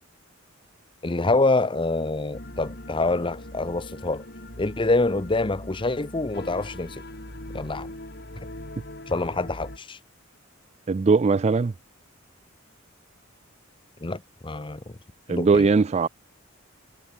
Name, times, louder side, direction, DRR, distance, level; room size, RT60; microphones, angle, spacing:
voice 1, 1.0-4.2 4.6-7.0 7.5-7.9 9.1-10.0 14.0-15.0 15.3-15.7, left 2 dB, 25° left, 0.8 m, -26 dB
sound 1, 2.3-9.8, left 1 dB, 50° left, 6.6 m, -41 dB
voice 2, 10.9-11.7 15.3-16.1, right 4 dB, 30° right, 0.3 m, -20 dB
head